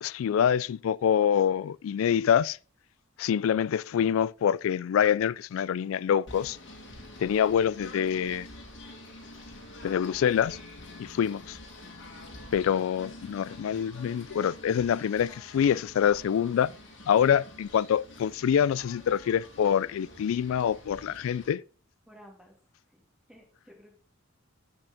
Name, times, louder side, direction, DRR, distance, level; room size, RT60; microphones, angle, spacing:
voice 1, 0.0-2.6 3.2-6.6 7.2-8.5 9.8-10.6 11.0-11.6 12.5-16.7 17.1-21.6, left 8 dB, 85° left, 0.3 m, -25 dB
Singing / Bird, 6.2-21.5, left 1 dB, 60° left, 2.1 m, -47 dB
voice 2, 22.1-22.5 22.9-23.0 23.3-24.0, equal, 5° right, 2.1 m, -53 dB
13.0 x 5.2 x 3.5 m
head